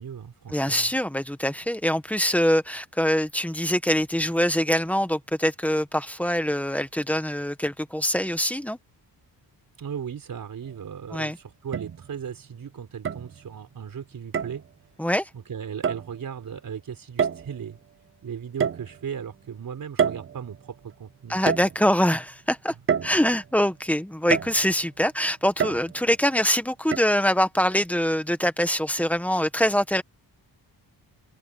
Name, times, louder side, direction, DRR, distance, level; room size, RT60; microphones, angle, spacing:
voice 1, 0.0-0.9 9.8-14.6 15.3-17.8 18.2-21.6 22.7-22.8, right 7 dB, 55° right, 4.0 m, -37 dB
voice 2, 0.5-8.8 11.1-11.4 15.0-15.3 21.3-22.7 23.0-30.0, equal, 5° left, 1.1 m, -24 dB
sound 1, 10.6-10.7 11.7-12.3 13.0-13.7 14.3-14.7 15.8-16.1 17.2-17.7 18.6-19.3 20.0-20.8 21.5-22.1 22.9-23.6 24.3-24.8 25.6-26.2 26.9-27.0, right 7 dB, 30° right, 0.5 m, -28 dB
open air
wide cardioid pair, 180°, 41 cm